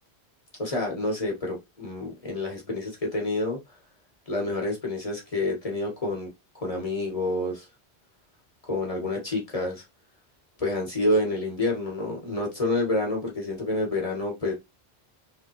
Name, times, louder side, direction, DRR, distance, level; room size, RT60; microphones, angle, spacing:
voice 1, 0.6-3.6 4.3-6.3 6.6-7.7 8.7-9.8 10.6-14.5, left 2 dB, 35° left, 2.0 m, -28 dB
4.2 x 3.4 x 3.1 m
omnidirectional pair, 1.0 m